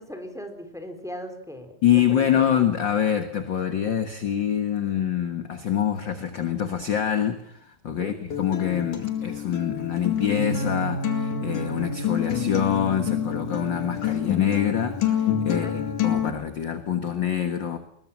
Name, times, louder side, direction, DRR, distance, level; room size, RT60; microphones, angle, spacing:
voice 1, 0.0-2.4 7.9-8.2 15.5-15.7, equal, ahead, 6 dB, 3.6 m, -38 dB
voice 2, 1.8-17.8, left 9 dB, 45° left, 8 dB, 1.7 m, -25 dB
Acoustic guitar, 8.3-16.3, left 7 dB, 70° left, 3.8 m, -27 dB
21.5 x 20.5 x 7.3 m, 0.69 s
omnidirectional pair, 3.6 m